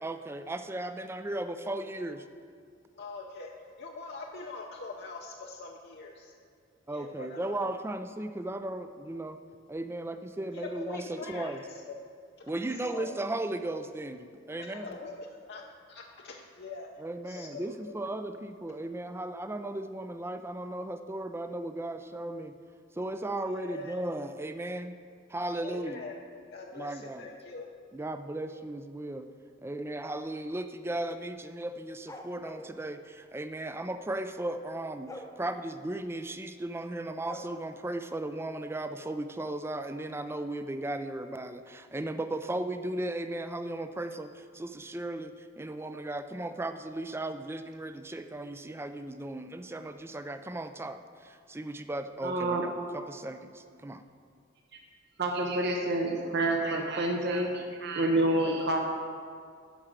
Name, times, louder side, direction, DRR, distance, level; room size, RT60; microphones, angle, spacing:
voice 1, 0.0-2.2 6.9-9.4 9.7-11.6 12.5-15.0 17.0-22.5 22.9-25.0 25.3-26.1 26.8-27.3 27.9-29.3 29.6-54.0, right 1 dB, 15° right, 9 dB, 0.4 m, -36 dB
voice 2, 2.9-3.5 3.8-6.3 6.9-7.6 10.5-12.0 12.8-13.2 14.6-17.7 23.6-24.0 25.6-26.2 26.5-27.7, left 3 dB, 60° left, 0 dB, 0.6 m, -43 dB
sound 1, 32.1-32.7 35.1-35.3 37.2-37.4, left 1 dB, 15° left, 0.7 m, -43 dB
voice 3, 52.2-52.6 55.2-58.8, right 1 dB, 60° right, 1 dB, 0.8 m, -28 dB
11.5 x 4.9 x 6.5 m, 2.2 s
head